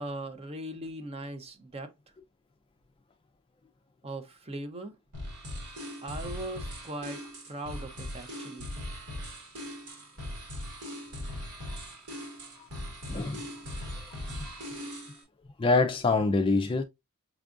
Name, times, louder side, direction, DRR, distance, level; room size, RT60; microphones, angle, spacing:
voice 1, 0.0-1.9 4.0-5.0 6.0-7.2 7.5-8.7, right 1 dB, 25° right, 0.5 m, -39 dB
sound 1, 5.1-15.2, left 1 dB, 80° right, 1.8 m, -40 dB
voice 2, 13.1-13.4 14.4-14.5 15.6-16.8, left 3 dB, 25° left, 0.3 m, -25 dB
6.0 x 2.4 x 2.4 m
head